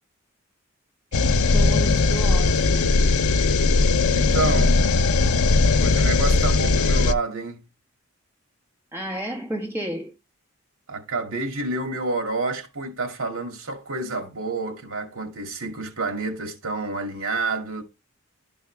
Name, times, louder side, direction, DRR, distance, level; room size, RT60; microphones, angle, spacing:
sound 1, 1.1-7.1, left 3 dB, 85° left, 0.6 m, -19 dB
voice 1, 1.5-3.0 8.9-10.1, right 1 dB, 10° right, 1.4 m, -32 dB
voice 2, 4.1-4.8 5.7-7.6 10.9-17.8, right 3 dB, 70° right, 2.4 m, -29 dB
12.0 x 5.4 x 3.4 m
head